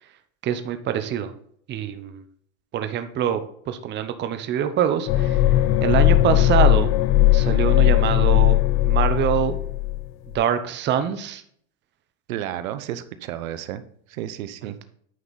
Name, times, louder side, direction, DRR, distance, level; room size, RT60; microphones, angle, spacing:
voice 1, 0.4-1.3 1.7-2.2 2.7-5.4 5.8-6.9 7.3-9.6 10.3-11.4, right 9 dB, 25° right, 9 dB, 0.8 m, -24 dB
sound 1, 5.1-10.1 10.3-10.4, left 14 dB, 40° left, 0.5 m, -18 dB
voice 2, 12.3-13.8 14.1-14.8, right 12 dB, 75° right, 12 dB, 0.9 m, -32 dB
9.4 x 5.6 x 4.1 m, 0.64 s
supercardioid pair, 135°, 41 cm